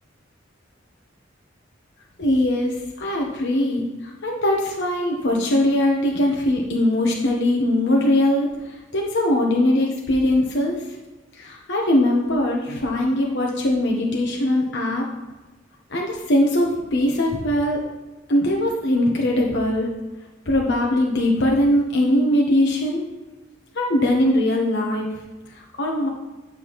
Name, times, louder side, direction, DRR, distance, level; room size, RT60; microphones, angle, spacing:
voice 1, 2.2-10.8 11.3-15.1 15.9-17.8 18.3-19.9 20.4-23.0 23.7-25.1 25.5-26.1, left 1 dB, 65° left, -1 dB, 1.1 m, -21 dB
10.0 x 7.5 x 3.1 m, 1.2 s
head